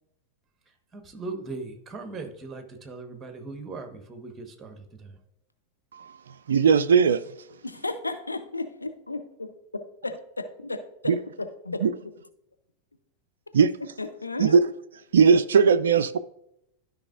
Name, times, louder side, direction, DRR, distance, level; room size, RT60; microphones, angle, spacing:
voice 1, 0.9-5.2, right 3 dB, 20° right, 1.2 m, -39 dB
voice 2, 5.9-7.2 11.1-11.2 11.8-11.9 13.5-13.7 14.4-14.7 15.1-16.2, right 6 dB, 65° right, 0.3 m, -19 dB
voice 3, 7.6-9.5 10.0-11.1 11.6-11.8 13.5-13.6 14.0-14.6, left 3 dB, 80° left, 0.6 m, -34 dB
12.5 x 5.4 x 2.5 m
figure-of-eight pair, 90°, 0 cm